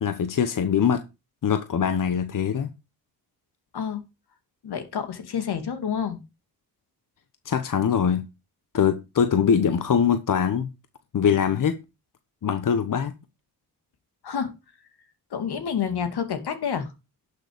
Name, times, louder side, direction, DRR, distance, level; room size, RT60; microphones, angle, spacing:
voice 1, 0.0-1.0 1.4-2.7 7.4-8.3 8.7-10.7 11.1-11.8 12.4-13.1, left 7 dB, 55° left, 1.1 m, -22 dB
voice 2, 4.6-6.2 14.2-14.5 15.3-16.9, left 7 dB, 75° left, 2.6 m, -28 dB
11.5 x 6.8 x 5.1 m
cardioid pair, 65°, 39 cm